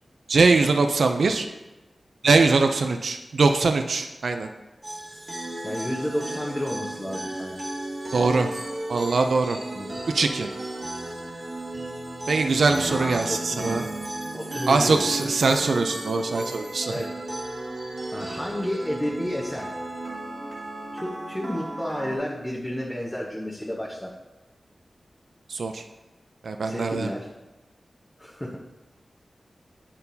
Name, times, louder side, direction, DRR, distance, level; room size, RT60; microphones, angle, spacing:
voice 1, 0.3-1.5 2.2-4.5 8.1-8.5 8.9-9.6 10.1-10.5 12.3-13.8 14.7-17.0 25.5-25.8 26.4-27.1, right 3 dB, 80° right, 6 dB, 0.4 m, -22 dB
sound 1, 4.8-22.2, right 1 dB, 40° right, 1.2 m, -34 dB
voice 2, 5.6-7.7 9.7-10.0 12.9-13.8 14.3-15.3 16.9-17.2 18.1-19.7 20.9-24.1 26.6-27.3 28.2-28.6, equal, 20° left, -4 dB, 0.9 m, -31 dB
8.5 x 4.4 x 2.7 m, 1.1 s
wide cardioid pair, 65°, 0 cm